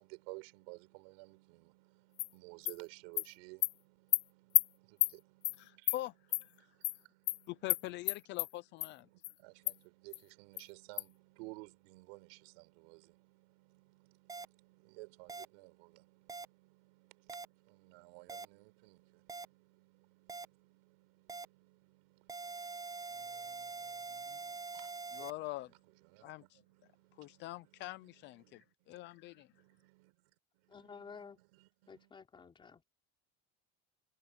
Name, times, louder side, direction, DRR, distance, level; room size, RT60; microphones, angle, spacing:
voice 1, 0.0-5.9 6.5-7.7 9.0-32.1, right 29 dB, 75° right, 4.6 m, -57 dB
Animal, 2.2-2.3 2.7-2.8 3.2-3.3 3.6-3.7 4.1-4.2 4.5-4.6 5.0-5.1 5.4-5.6 5.9-6.0 6.3-6.4 6.8-7.0 7.3-7.4 7.7-7.8 8.1-8.5 8.8-8.9 9.2-9.3 9.7-9.8 10.1-10.2 10.6-10.7 11.0-11.1, left 23 dB, 85° left, 0.9 m, -30 dB
voice 2, 5.6-6.1 6.4-6.7 7.5-9.1 25.1-25.7 26.2-26.6 27.1-29.5, left 17 dB, 40° left, 0.5 m, -44 dB
sound 1, 14.3-14.4 15.3-15.4 16.3-16.4 17.3-17.4 18.3-18.4 19.3-19.4 20.3-20.4 21.3-21.4 22.3-25.3, right 4 dB, 10° right, 1.5 m, -44 dB
voice 3, 30.7-31.4 31.9-32.8, left 5 dB, 15° left, 4.9 m, -52 dB
cardioid pair, 175°, 30 cm